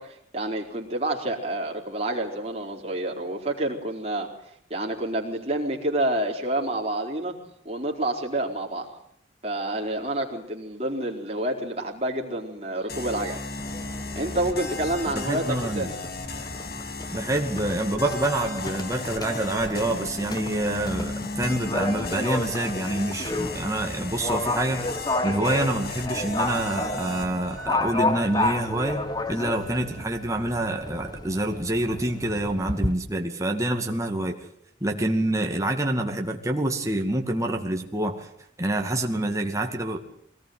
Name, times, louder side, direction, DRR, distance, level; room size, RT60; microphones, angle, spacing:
voice 1, 0.0-4.3 4.7-7.4 7.6-8.9 9.4-13.4 14.1-15.9, right 1 dB, 35° right, 1 dB, 4.3 m, -28 dB
sound 1, 12.9-27.7, left 2 dB, 60° left, 2.4 m, -35 dB
Livestock farm animals working animals, 13.6-32.9, left 2 dB, 20° left, 1.2 m, -32 dB
voice 2, 15.2-15.9 17.1-24.9 25.2-34.4 34.8-38.3 38.6-40.0, right 1 dB, 20° right, 2 dB, 2.2 m, -27 dB
sound 2, 27.6-32.9, right 4 dB, 70° right, 3.2 m, -48 dB
23.0 x 18.5 x 9.6 m, 0.68 s
head